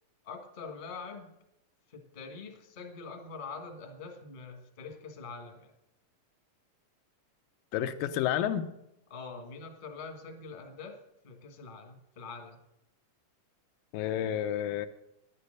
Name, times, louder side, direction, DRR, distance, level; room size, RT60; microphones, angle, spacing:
voice 1, 0.2-1.3 1.9-5.7 9.1-12.6, left 4 dB, 30° left, 3 dB, 0.9 m, -44 dB
voice 2, 7.7-8.7 13.9-14.9, left 10 dB, 85° left, 8 dB, 2.5 m, -30 dB
10.5 x 9.9 x 6.5 m, 0.82 s
omnidirectional pair, 3.9 m